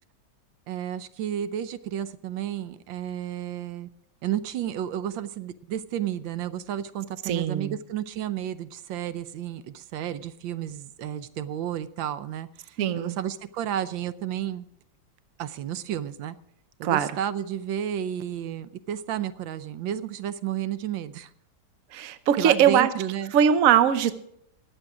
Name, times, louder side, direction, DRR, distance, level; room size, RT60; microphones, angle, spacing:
voice 1, 0.7-3.9 4.2-14.6 15.4-16.4 16.8-21.3 22.4-23.3, right 10 dB, 85° right, 13 dB, 1.4 m, -32 dB
voice 2, 7.3-7.7 12.8-13.2 16.8-17.1 21.9-22.9 23.3-24.1, right 9 dB, 55° right, 12 dB, 1.1 m, -21 dB
20.0 x 8.0 x 4.9 m, 0.72 s
omnidirectional pair, 2.0 m